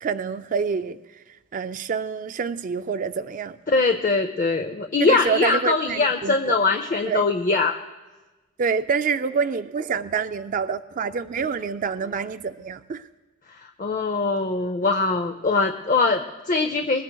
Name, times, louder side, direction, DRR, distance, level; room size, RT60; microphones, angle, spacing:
voice 1, 0.0-1.2 1.5-3.6 5.0-6.6 7.1-7.2 8.6-13.1, right 6 dB, 40° right, 0.3 m, -27 dB
voice 2, 3.7-7.8 13.6-17.0, left 3 dB, 40° left, 0.6 m, -22 dB
21.0 x 20.0 x 2.3 m
head